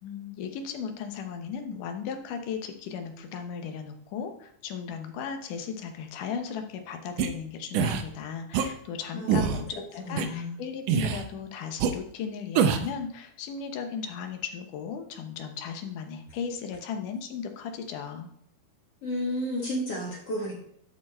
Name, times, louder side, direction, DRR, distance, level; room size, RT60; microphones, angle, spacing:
voice 1, 0.0-18.3, left 6 dB, 80° left, 6 dB, 2.5 m, -36 dB
sound 1, 7.2-7.3 7.7-8.0 8.5-8.7 9.3-9.6 10.2-10.3 10.9-11.3 11.8-11.9 12.6-12.9, right 8 dB, 80° right, 2.3 m, -24 dB
voice 2, 9.1-9.6 10.0-10.5 19.0-20.6, left 1 dB, 50° left, -4 dB, 2.6 m, -32 dB
11.0 x 4.9 x 4.3 m, 0.69 s
omnidirectional pair, 3.7 m